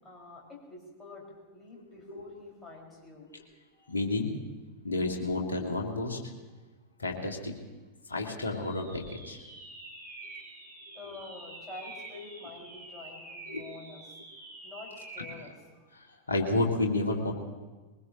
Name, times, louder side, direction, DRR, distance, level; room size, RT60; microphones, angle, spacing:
voice 1, 0.0-3.3 3.7-4.0 6.9-7.0 11.0-14.0 14.6-15.8, left 3 dB, 15° left, -3 dB, 5.2 m, -47 dB
voice 2, 1.9-2.2 3.3-3.4 3.9-4.3 4.8-6.2 7.0-7.5 8.1-9.4 13.5-13.6 15.9-17.3, left 2 dB, 75° left, 1 dB, 2.1 m, -31 dB
sound 1, 8.5-15.5, right 2 dB, 70° right, 4.7 m, -47 dB
22.0 x 19.5 x 3.0 m, 1.3 s
figure-of-eight pair, 90°, 0 cm